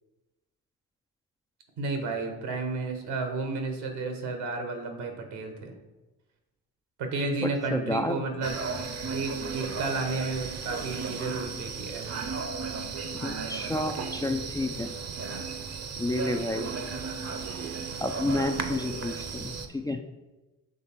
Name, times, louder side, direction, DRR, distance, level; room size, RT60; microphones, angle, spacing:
voice 1, 1.8-5.7 7.0-8.6 9.1-12.2, right 3 dB, 75° right, 4 dB, 1.2 m, -32 dB
voice 2, 7.4-8.3 13.2-14.9 16.0-16.7 18.0-20.0, left 2 dB, 10° left, 5 dB, 0.3 m, -30 dB
sound 1, 8.4-19.7, right 5 dB, 40° right, 0.8 m, -35 dB
6.6 x 3.2 x 4.4 m, 1.1 s
hypercardioid pair, 55°, 41 cm